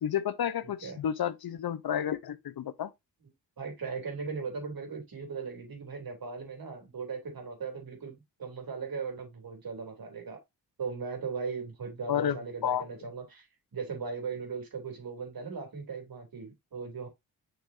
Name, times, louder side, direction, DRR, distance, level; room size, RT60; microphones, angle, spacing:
voice 1, 0.0-2.9 12.1-12.8, left 9 dB, 65° left, 0.8 m, -31 dB
voice 2, 3.6-10.4 10.8-13.5 13.7-17.1, right 5 dB, 60° right, 3.2 m, -38 dB
7.1 x 6.0 x 2.6 m
cardioid pair, 65°, 39 cm